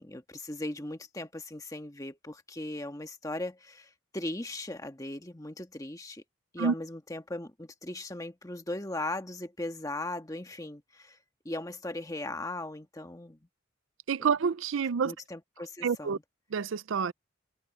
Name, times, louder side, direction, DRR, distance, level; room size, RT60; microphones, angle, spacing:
voice 1, 0.0-6.2 6.5-11.2 11.4-13.4 15.0-16.2, left 1 dB, 15° left, 1.4 m, -38 dB
voice 2, 14.1-15.1 15.8-16.2 16.5-17.1, right 6 dB, 70° right, 0.5 m, -28 dB
head